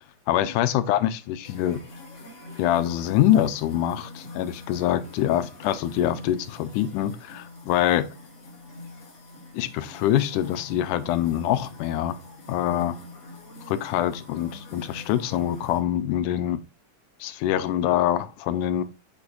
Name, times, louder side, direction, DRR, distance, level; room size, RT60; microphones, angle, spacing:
voice 1, 0.3-1.8 2.6-8.1 9.5-12.2 12.5-13.0 13.7-16.6 17.2-18.8, left 12 dB, 80° left, 2.1 m, -24 dB
sound 1, 1.4-15.8, left 2 dB, 45° left, 0.9 m, -44 dB
6.9 x 5.9 x 2.4 m
omnidirectional pair, 3.7 m